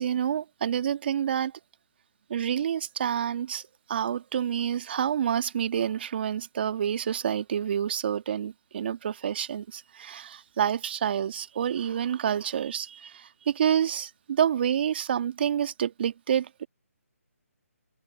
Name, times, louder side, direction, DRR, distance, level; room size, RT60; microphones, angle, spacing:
voice 1, 0.0-1.6 2.3-3.6 3.9-16.7, right 9 dB, 40° right, 1.7 m, -28 dB
figure-of-eight pair, 155°, 8 cm